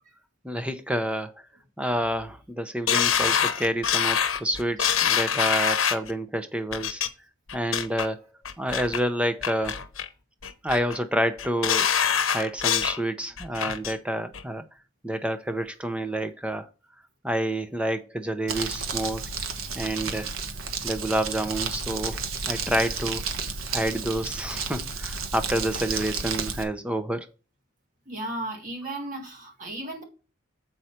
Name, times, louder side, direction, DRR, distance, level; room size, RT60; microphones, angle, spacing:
voice 1, 0.4-1.3 1.8-7.0 7.5-8.2 8.6-9.8 10.6-11.9 12.3-14.6 15.0-16.7 17.2-19.3 19.7-20.3 20.8-23.2 23.7-27.3, right 1 dB, 5° right, 0.7 m, -28 dB
sound 1, 2.9-6.1 6.7-7.1 7.5-8.1 8.4-9.0 9.4-10.1 10.4-11.0 11.4-13.0 13.4-13.9 14.3-14.4, left 8 dB, 80° left, 0.9 m, -25 dB
Crumpling crinkling, 18.5-26.6, right 5 dB, 85° right, 1.3 m, -32 dB
voice 2, 28.1-30.0, right 1 dB, 40° right, 2.0 m, -35 dB
7.8 x 5.5 x 4.4 m
head